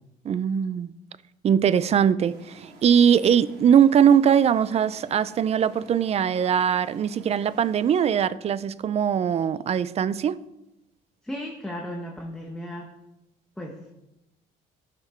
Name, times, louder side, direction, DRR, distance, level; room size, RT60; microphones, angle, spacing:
voice 1, 0.2-0.9 1.4-10.5, right 8 dB, 40° right, 0.4 m, -21 dB
sound 1, 2.2-8.2, right 2 dB, 75° right, 3.2 m, -50 dB
voice 2, 11.2-12.9 13.6-13.8, equal, 5° left, 1.2 m, -35 dB
12.5 x 6.0 x 4.4 m
cardioid pair, 110°, 17 cm